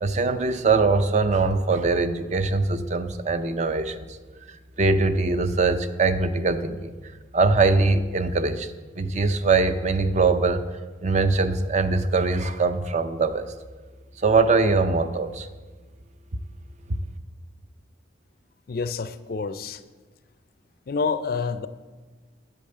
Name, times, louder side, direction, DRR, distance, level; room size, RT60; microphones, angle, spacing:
voice 1, 0.0-4.0 4.5-6.9 7.3-10.6 11.0-13.5 14.2-15.5, right 3 dB, 40° right, 10 dB, 0.5 m, -22 dB
voice 2, 18.7-19.8 20.9-21.7, left 5 dB, 50° left, 13 dB, 0.4 m, -28 dB
8.6 x 7.8 x 6.7 m, 1.4 s
head